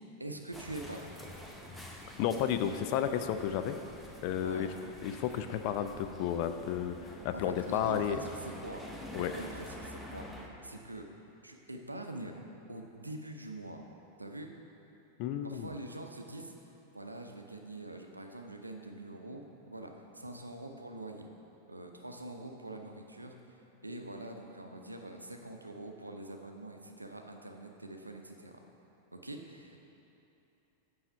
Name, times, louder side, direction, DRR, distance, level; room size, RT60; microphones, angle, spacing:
voice 1, 0.2-1.1 4.4-4.7 7.3-8.9 9.2-10.3 10.6-11.1 11.4-12.3 12.7-13.8 14.2-14.5 15.4-16.5 16.9-19.4 19.7-21.3 21.7-23.6 23.8-28.6 29.1-29.8, right 2 dB, 85° right, 4 dB, 0.6 m, -44 dB
sound 1, 0.5-10.5, left 1 dB, 5° left, 0.8 m, -48 dB
voice 2, 2.2-3.8 4.2-4.7 5.0-8.2 9.1-9.3 15.2-15.7, left 9 dB, 45° left, 9 dB, 0.4 m, -32 dB
7.9 x 5.6 x 4.7 m, 2.9 s
figure-of-eight pair, 90°, 0 cm